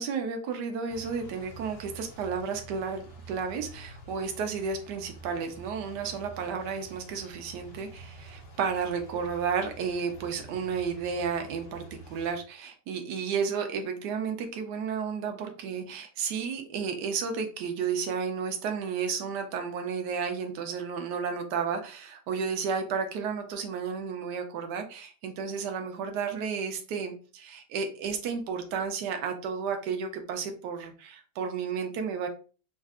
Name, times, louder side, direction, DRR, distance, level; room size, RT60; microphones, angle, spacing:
voice 1, 0.0-32.3, right 6 dB, 70° right, 5 dB, 1.3 m, -32 dB
sound 1, 0.9-12.3, right 2 dB, 50° left, 0.7 m, -48 dB
5.4 x 2.5 x 2.4 m, 0.37 s
omnidirectional pair, 2.0 m